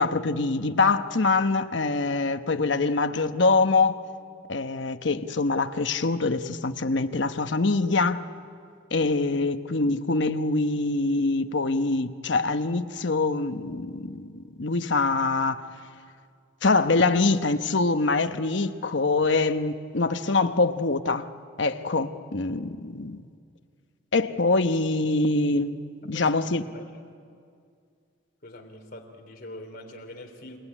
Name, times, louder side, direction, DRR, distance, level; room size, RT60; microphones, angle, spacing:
voice 1, 0.0-4.0 4.5-8.2 8.9-15.6 16.6-21.3 21.6-23.2 24.1-25.8 26.0-26.6, left 3 dB, 65° left, 9 dB, 1.0 m, -24 dB
voice 2, 26.1-26.8 28.4-30.6, left 1 dB, 50° left, 2 dB, 3.4 m, -43 dB
28.0 x 18.5 x 10.0 m, 2.3 s
head